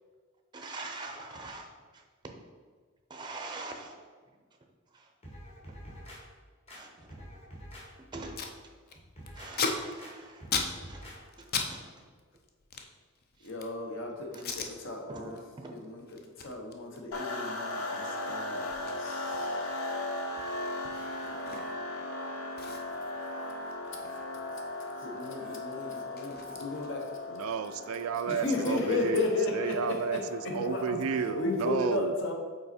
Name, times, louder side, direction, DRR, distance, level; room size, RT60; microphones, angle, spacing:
voice 1, 0.5-2.3 3.1-4.0 4.2-4.4 4.9-5.1 5.7-5.8 6.7-7.3 8.1-8.4 8.6-8.7 9.3-10.5 10.9-12.0 13.4-13.5 14.3-14.7 15.0-16.2, right 3 dB, 20° right, 3 dB, 0.5 m, -44 dB
sound 1, 5.2-6.2 6.7-7.9 8.1-8.5 9.0-9.5 10.0-10.1 10.4-11.2 11.5-11.7, equal, 30° left, 1.2 m, -47 dB
Packing tape duct tape, 7.8-7.9 8.1-8.6 8.9-11.7 12.0-13.8 14.3-14.7 15.2-15.4 15.7-22.0 22.2-22.3 22.6-24.9 25.2-27.2, left 5 dB, 50° left, 0.5 m, -39 dB
voice 2, 13.4-15.4 15.7-16.0 16.4-19.6 25.0-27.1 28.3-32.3, left 2 dB, 65° left, 2 dB, 0.9 m, -34 dB
sound 2, 17.1-31.7, left 2 dB, 85° left, 0.7 m, -37 dB
voice 3, 27.4-29.3 29.5-32.1, right 6 dB, 85° right, 12 dB, 0.3 m, -32 dB
5.4 x 4.0 x 4.3 m, 1.5 s
head